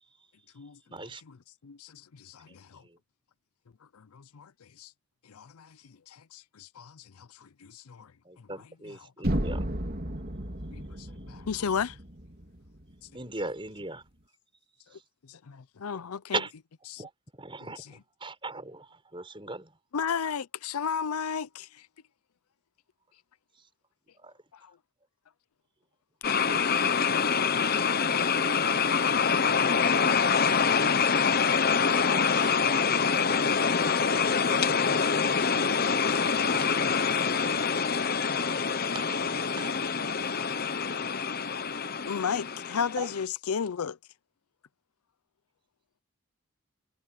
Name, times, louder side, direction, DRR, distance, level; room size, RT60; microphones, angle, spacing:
voice 1, 0.9-1.2 2.5-2.6 2.8-3.0 8.2-9.7 13.1-14.0 14.9-15.0 16.3-16.5 17.0-17.1 17.4-19.8 24.2-24.3 31.9-33.2 36.5-36.7 38.9-39.8 43.0-43.1, right 3 dB, 25° right, 5.9 m, -39 dB
voice 2, 1.6-2.8 3.9-4.5 4.8-4.9 5.3-5.8 6.1-8.1 10.7-12.0 15.3-16.4 16.9-17.0 19.9-21.7 42.1-44.0, left 6 dB, 85° left, 0.6 m, -34 dB
sound 1, 9.2-13.2, right 1 dB, 40° right, 3.4 m, -33 dB
sound 2, 26.2-43.2, left 6 dB, 45° left, 0.9 m, -25 dB
head